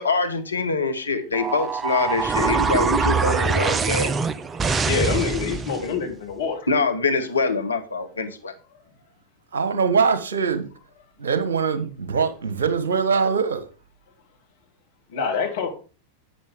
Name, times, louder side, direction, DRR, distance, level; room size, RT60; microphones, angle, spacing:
voice 1, 0.0-4.1 6.7-8.5, left 3 dB, 75° left, 1.1 m, -24 dB
sound 1, 1.3-5.9, right 5 dB, 20° right, 0.5 m, -23 dB
voice 2, 4.8-6.6 15.1-15.7, left 6 dB, 55° left, 3.1 m, -26 dB
voice 3, 9.5-10.7 11.2-13.6, right 5 dB, 65° right, 1.3 m, -22 dB
11.5 x 8.6 x 3.6 m
figure-of-eight pair, 90°, 0 cm